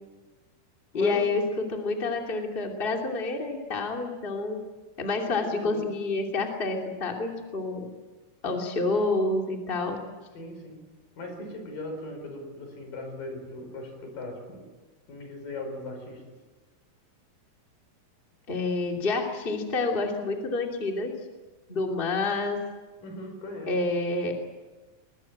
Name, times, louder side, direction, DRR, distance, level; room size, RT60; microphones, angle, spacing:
voice 1, 0.9-4.6 5.0-7.9 8.4-10.0 18.5-21.1 21.7-22.6 23.7-24.3, left 3 dB, 15° left, 2 dB, 2.5 m, -28 dB
voice 2, 5.3-5.8 8.4-8.8 10.3-10.9 11.2-14.6 15.1-16.3 23.0-23.7, left 2 dB, 70° left, 4 dB, 6.7 m, -39 dB
22.5 x 20.0 x 8.8 m, 1.3 s
omnidirectional pair, 4.0 m